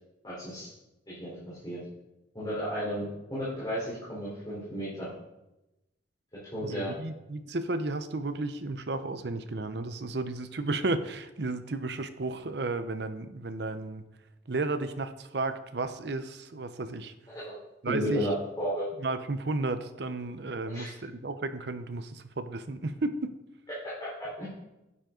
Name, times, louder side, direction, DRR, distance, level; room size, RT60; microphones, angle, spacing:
voice 1, 0.2-0.7 1.1-1.8 2.3-3.0 3.3-5.1 6.5-6.9 17.3-17.5 17.9-18.9 20.7-20.9 24.0-24.4, equal, 20° left, -10 dB, 3.9 m, -33 dB
voice 2, 6.6-14.0 14.5-17.1 17.8-18.3 19.0-23.3, right 2 dB, 60° right, 10 dB, 0.7 m, -33 dB
9.6 x 9.3 x 3.8 m, 0.95 s
head